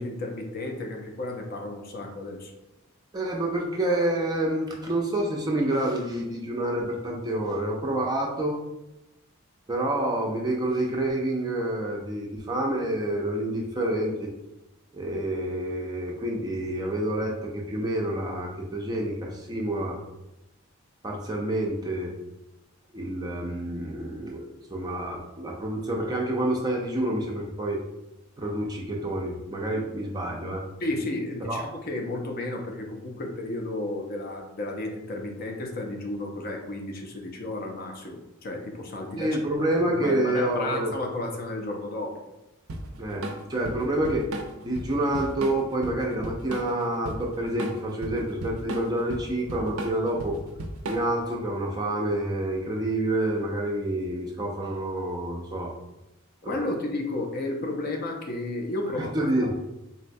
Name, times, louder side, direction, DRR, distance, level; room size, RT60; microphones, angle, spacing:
voice 1, 0.0-2.5 30.8-39.4 39.9-42.2 56.4-59.1, left 2 dB, 45° left, 2 dB, 0.4 m, -33 dB
voice 2, 3.1-8.6 9.7-14.3 14.9-20.0 21.0-22.1 22.9-27.8 28.4-30.6 31.5-31.6 39.2-40.9 43.0-43.2 43.5-44.3 44.6-50.4 50.9-55.7 56.4-56.7 59.0-59.5, right 1 dB, 20° right, -1 dB, 0.4 m, -28 dB
Drum kit / Drum, 42.7-51.3, right 2 dB, 85° right, 0.4 m, -35 dB
3.8 x 2.1 x 2.6 m, 0.93 s
head